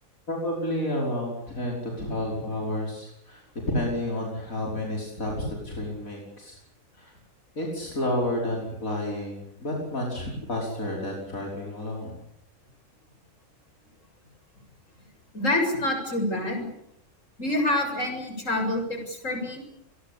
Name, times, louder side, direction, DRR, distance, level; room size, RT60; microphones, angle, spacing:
voice 1, 0.3-3.4 3.7-6.6 7.0-7.1 7.6-12.2, left 1 dB, 85° left, -1 dB, 5.9 m, -30 dB
voice 2, 15.3-16.7 17.4-19.6, left 1 dB, 65° left, 4 dB, 7.5 m, -27 dB
28.5 x 22.5 x 8.5 m, 0.77 s
omnidirectional pair, 1.4 m